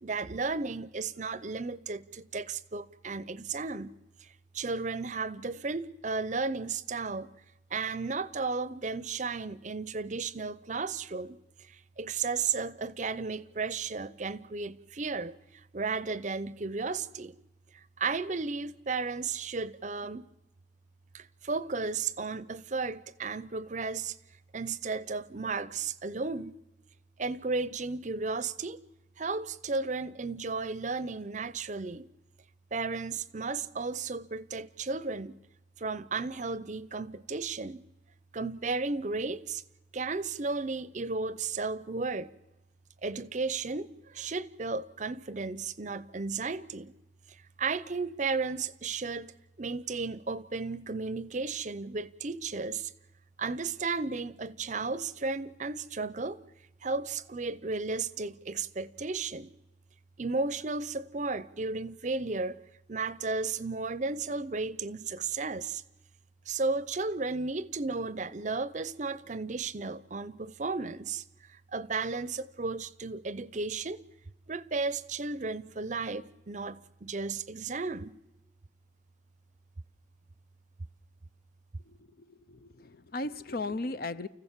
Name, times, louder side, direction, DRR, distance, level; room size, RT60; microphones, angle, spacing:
voice 1, 0.0-4.3 4.5-7.3 7.7-11.4 11.6-15.4 15.7-17.4 18.0-20.3 21.1-24.2 24.5-26.6 27.2-28.8 29.2-32.1 32.7-35.4 35.8-37.8 38.3-39.6 39.9-42.3 43.0-46.9 47.6-49.3 49.6-52.9 53.4-56.4 56.8-59.5 60.2-62.6 62.9-65.8 66.5-71.2 71.5-74.0 74.5-78.2, right 4 dB, 40° right, 0.6 m, -34 dB
voice 2, 82.5-84.3, left 2 dB, 50° left, 0.6 m, -36 dB
29.5 x 15.0 x 7.4 m
head